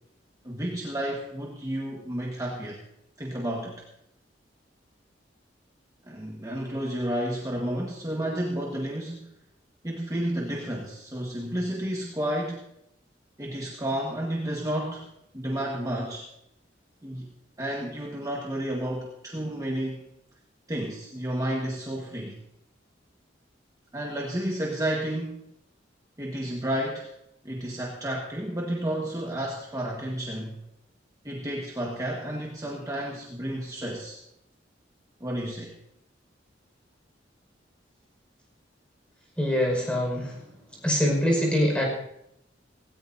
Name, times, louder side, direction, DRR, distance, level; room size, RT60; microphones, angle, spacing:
voice 1, 0.4-2.8 3.2-3.8 6.0-9.3 9.8-12.6 13.4-16.3 17.0-17.3 17.6-20.1 20.7-22.4 23.9-25.5 26.2-27.1 27.4-30.6 31.2-34.2 35.2-35.8, right 1 dB, 20° right, -2 dB, 1.6 m, -31 dB
voice 2, 39.4-40.4 40.8-41.9, equal, 5° left, -1 dB, 5.4 m, -24 dB
17.5 x 17.5 x 2.8 m, 0.79 s
head